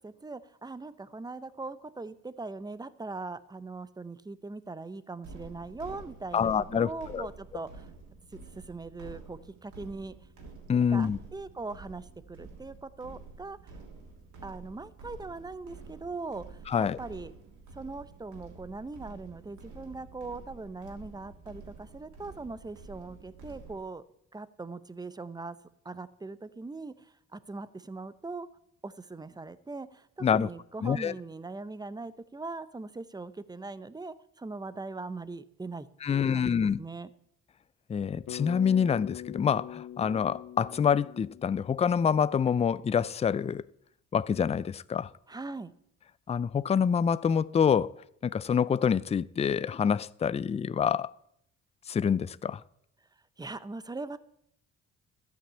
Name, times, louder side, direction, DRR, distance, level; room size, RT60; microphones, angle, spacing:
voice 1, 0.0-7.9 8.3-10.1 10.9-13.6 14.4-17.3 17.7-24.0 24.3-25.6 25.8-28.5 28.8-37.1 45.3-45.7 53.4-54.2, right 3 dB, 15° right, 0.7 m, -41 dB
sound 1, 5.2-23.8, right 3 dB, 80° right, 3.0 m, -49 dB
voice 2, 6.3-7.3 10.7-11.2 16.7-17.0 30.2-30.5 30.8-31.1 36.0-36.8 37.9-43.6 44.1-45.1 46.3-48.0 48.2-51.1 51.9-52.6, left 7 dB, 20° left, 0.4 m, -26 dB
Bass guitar, 38.3-42.6, left 11 dB, 65° left, 0.6 m, -43 dB
12.5 x 6.0 x 8.5 m
cardioid pair, 90°, 30 cm